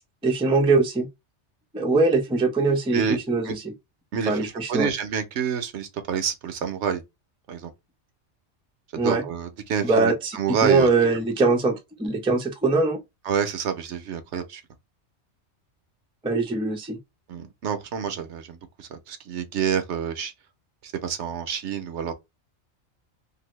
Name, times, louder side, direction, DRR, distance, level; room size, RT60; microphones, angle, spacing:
voice 1, 0.2-1.1 1.7-3.7 4.3-4.9 9.0-9.2 9.8-10.4 10.6-13.0 16.2-17.0, right 3 dB, 10° right, 0.3 m, -22 dB
voice 2, 4.1-7.0 7.5-7.7 8.9-10.9 13.2-14.6 17.3-20.3 20.8-22.1, right 7 dB, 75° right, 1.0 m, -28 dB
2.7 x 2.6 x 3.0 m
omnidirectional pair, 1.2 m